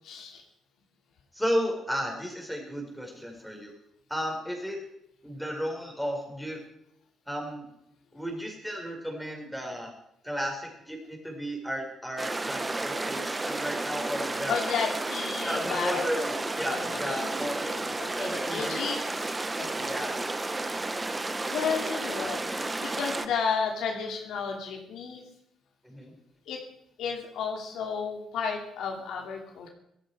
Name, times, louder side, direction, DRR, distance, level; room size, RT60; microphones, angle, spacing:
voice 1, 0.0-0.4 14.5-16.1 16.7-19.0 19.5-19.9 21.5-22.4 22.8-25.2 26.5-26.6 27.0-29.7, left 6 dB, 80° left, 1 dB, 2.8 m, -33 dB
voice 2, 1.3-3.7 4.1-4.8 5.2-6.6 7.3-7.7 8.1-9.9 10.2-14.6 15.4-18.8 19.7-20.2 25.8-26.1, equal, ahead, 1 dB, 5.0 m, -33 dB
sound 1, 12.2-23.3, right 2 dB, 20° right, 1.1 m, -32 dB
17.0 x 14.0 x 5.0 m, 0.79 s
cardioid pair, 90°, 0 cm